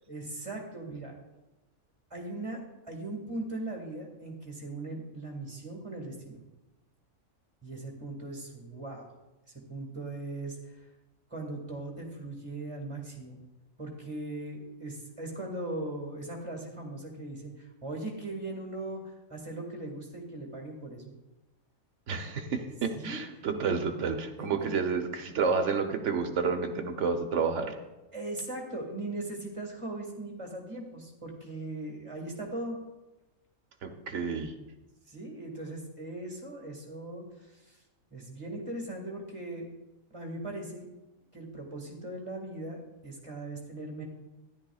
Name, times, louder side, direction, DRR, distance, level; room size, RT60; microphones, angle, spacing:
voice 1, 0.1-1.1 2.1-6.4 7.6-9.1 9.7-10.8 11.3-13.4 13.8-21.1 23.0-23.2 24.4-24.7 28.1-32.8 35.1-37.8 38.1-39.7 40.1-40.9 41.3-44.0, right 2 dB, 20° right, -1 dB, 2.0 m, -39 dB
voice 2, 22.1-27.7 33.8-34.5, right 5 dB, 60° right, 5 dB, 1.1 m, -30 dB
13.0 x 11.0 x 2.4 m, 1.1 s
omnidirectional pair, 1.5 m